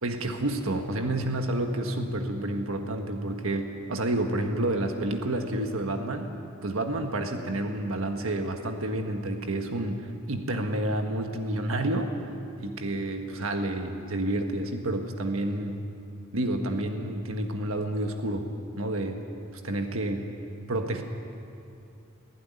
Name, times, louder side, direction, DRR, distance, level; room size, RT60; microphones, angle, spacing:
voice 1, 0.0-6.3 6.6-12.1 12.6-15.8 16.3-19.2 19.6-20.2 20.7-21.0, right 1 dB, 70° right, 5 dB, 1.6 m, -29 dB
21.0 x 16.0 x 9.8 m, 2.6 s
head